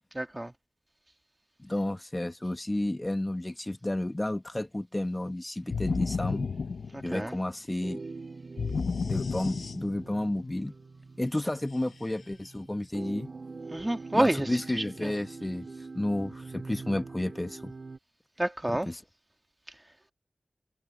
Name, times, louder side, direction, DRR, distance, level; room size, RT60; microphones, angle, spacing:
voice 1, 0.2-0.5 7.1-7.3 13.7-14.5 15.0-15.1 18.4-18.9, right 1 dB, 20° right, 2.4 m, -27 dB
voice 2, 1.6-6.5 7.0-8.0 9.1-10.7 11.2-13.3 14.1-17.7 18.7-19.0, left 1 dB, 25° left, 1.5 m, -31 dB
sound 1, 5.7-7.4 8.6-10.2, left 5 dB, 80° left, 0.9 m, -32 dB
sound 2, 7.8-18.0, right 3 dB, 65° right, 3.2 m, -44 dB
cardioid pair, 40°, 0 cm